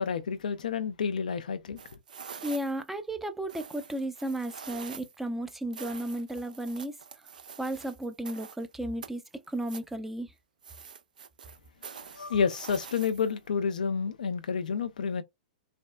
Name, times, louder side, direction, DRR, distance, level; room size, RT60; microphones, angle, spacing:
voice 1, 0.0-1.8 12.1-15.2, left 6 dB, 65° left, 0.4 m, -29 dB
sound 1, 1.8-2.9 3.5-5.2 5.7-8.7 9.0-9.9 10.6-13.5, right 6 dB, 70° right, 0.4 m, -46 dB
voice 2, 2.4-7.0 7.6-9.2 9.5-10.3, right 1 dB, 5° right, 0.4 m, -34 dB
3.3 x 2.1 x 2.2 m
figure-of-eight pair, 105°, 5 cm